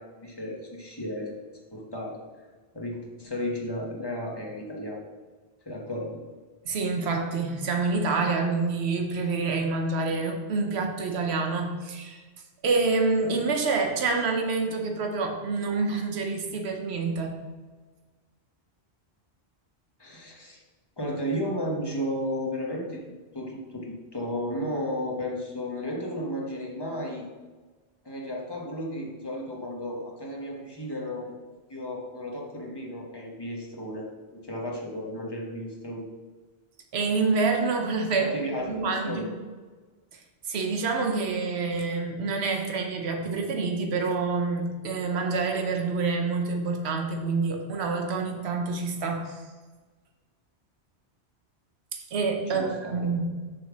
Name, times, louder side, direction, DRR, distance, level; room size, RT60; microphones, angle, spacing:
voice 1, 0.0-1.3 1.7-2.2 2.7-5.0 5.6-6.2 20.0-20.6 21.0-23.0 23.3-27.3 28.0-31.3 31.7-36.1 38.2-39.3 52.5-53.1, equal, 25° left, -2 dB, 1.2 m, -33 dB
voice 2, 6.6-12.2 12.6-17.4 36.9-38.3 38.7-39.3 40.5-49.4 51.9-53.3, right 4 dB, 75° right, 3 dB, 1.1 m, -27 dB
7.2 x 3.7 x 6.0 m, 1.4 s
omnidirectional pair, 1.1 m